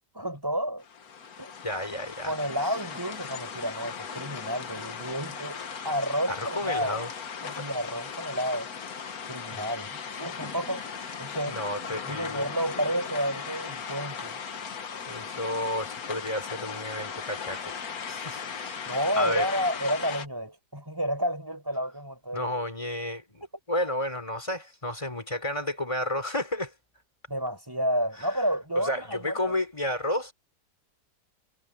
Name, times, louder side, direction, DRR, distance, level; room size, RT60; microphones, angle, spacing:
voice 1, 0.1-0.8 1.4-1.5 2.2-5.6 5.8-7.0 7.4-8.7 9.3-11.6 11.8-14.4 18.9-22.5 27.3-29.5, equal, 10° right, 5.4 m, -31 dB
sound 1, 0.8-20.3, left 6 dB, 65° left, 1.9 m, -38 dB
voice 2, 1.6-2.3 6.3-7.1 9.5-9.6 11.5-12.5 15.1-17.8 18.1-18.8 19.2-19.5 22.3-26.7 28.2-28.4 28.8-30.3, left 1 dB, 20° left, 3.7 m, -32 dB
omnidirectional pair, 1.8 m